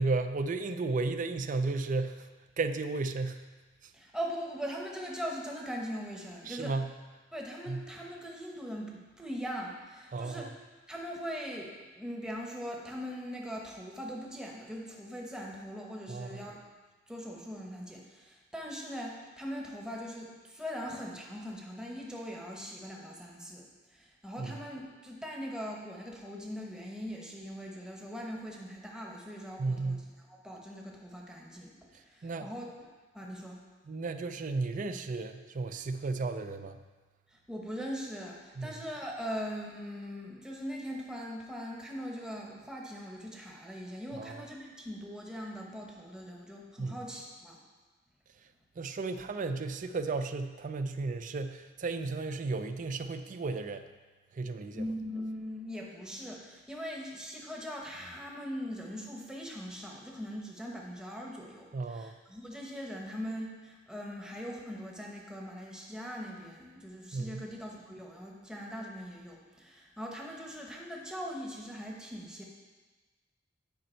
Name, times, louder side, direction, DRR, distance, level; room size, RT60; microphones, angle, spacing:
voice 1, 0.0-2.3 2.6-3.4 3.8-3.9 6.5-6.9 7.7-7.8 10.1-10.5 16.1-16.5 24.4-24.6 29.6-30.1 32.2-32.5 33.9-36.8 38.6-38.7 44.1-44.4 46.8-47.0 48.8-53.8 54.3-54.8 61.7-62.2 67.1-67.4, right 3 dB, 45° right, 9 dB, 0.4 m, -34 dB
voice 2, 3.9-6.7 7.3-10.5 10.9-16.6 17.1-30.0 30.3-32.6 33.1-33.6 37.3-47.6 54.7-72.4, equal, 5° right, -2 dB, 0.9 m, -41 dB
9.4 x 5.2 x 4.4 m, 1.3 s
head